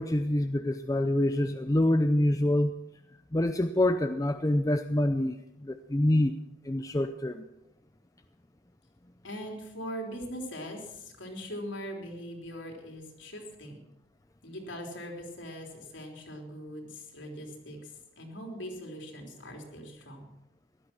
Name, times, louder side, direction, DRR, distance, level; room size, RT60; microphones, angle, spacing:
voice 1, 0.0-2.7 3.3-6.4 6.6-7.5, left 1 dB, 20° left, 8 dB, 0.6 m, -26 dB
voice 2, 9.2-13.8 14.4-20.3, equal, 85° left, 1 dB, 3.7 m, -41 dB
16.5 x 12.0 x 6.1 m, 0.91 s
head